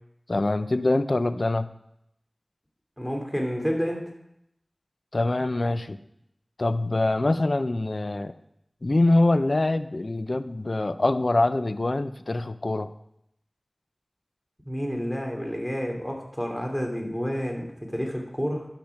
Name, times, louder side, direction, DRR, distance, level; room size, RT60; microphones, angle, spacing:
voice 1, 0.3-1.7 5.1-6.0 6.6-8.4 8.8-12.9, left 2 dB, 60° left, 12 dB, 0.5 m, -24 dB
voice 2, 3.0-4.1 14.7-18.7, equal, 5° left, 1 dB, 2.7 m, -29 dB
11.5 x 6.0 x 5.8 m, 0.78 s
wide cardioid pair, 40°, 0 cm